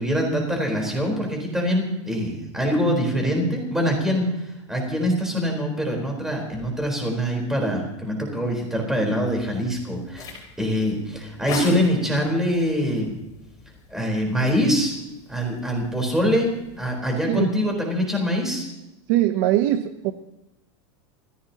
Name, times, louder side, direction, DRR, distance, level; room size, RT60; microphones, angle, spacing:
voice 1, 0.0-13.1 13.9-15.0 15.3-18.7, equal, 5° right, 1 dB, 4.1 m, -24 dB
sound 1, 9.2-17.0, left 2 dB, 20° left, 5.2 m, -40 dB
voice 2, 19.1-20.1, right 13 dB, 45° right, 9 dB, 0.8 m, -21 dB
30.0 x 15.5 x 2.9 m, 0.92 s
supercardioid pair, 175°, 15 cm